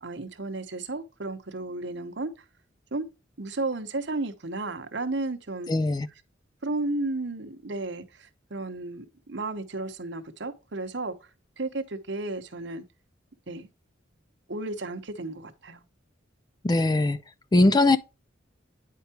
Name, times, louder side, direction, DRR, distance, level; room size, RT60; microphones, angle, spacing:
voice 1, 0.0-2.4 2.9-3.0 3.4-5.7 6.6-11.1 11.6-12.8 13.5-13.7 14.5-15.8, right 2 dB, 60° right, 1.0 m, -33 dB
voice 2, 5.7-6.1 16.6-17.2 17.5-18.0, left 2 dB, 20° left, 0.3 m, -20 dB
9.3 x 4.6 x 2.9 m
head